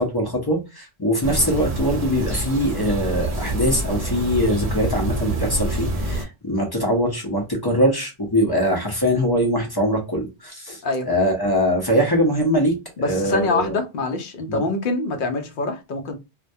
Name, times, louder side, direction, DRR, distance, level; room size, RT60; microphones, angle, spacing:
voice 1, 0.0-10.8 11.1-13.7 14.5-14.6, equal, 25° left, 0.5 m, -22 dB
sound 1, 1.2-6.2, right 1 dB, 40° right, 0.6 m, -26 dB
voice 2, 13.0-16.1, left 2 dB, 60° left, 0.7 m, -25 dB
2.2 x 2.1 x 2.6 m
omnidirectional pair, 1.1 m